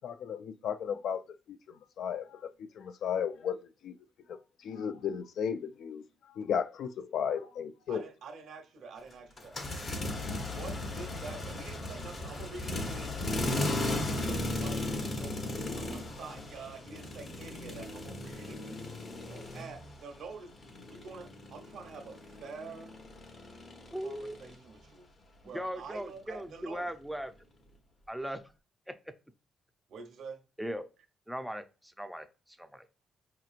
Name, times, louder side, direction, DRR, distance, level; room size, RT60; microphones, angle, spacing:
voice 1, 0.0-1.2 1.5-4.0 4.3-8.0, left 7 dB, 70° left, 0.4 m, -35 dB
voice 2, 7.9-10.1 10.4-14.8 15.1-18.9 19.3-20.5 20.9-23.0 24.0-25.1 25.4-26.9 29.9-30.4, right 4 dB, 70° right, 0.8 m, -47 dB
sound 1, 9.4-20.2 20.5-24.6, left 2 dB, 40° left, 0.9 m, -36 dB
voice 3, 23.9-24.4 25.4-27.3 28.1-28.4 28.9-29.1 30.6-30.9 31.3-32.9, equal, ahead, 0.5 m, -39 dB
4.9 x 2.9 x 2.4 m
cardioid pair, 90°, 0 cm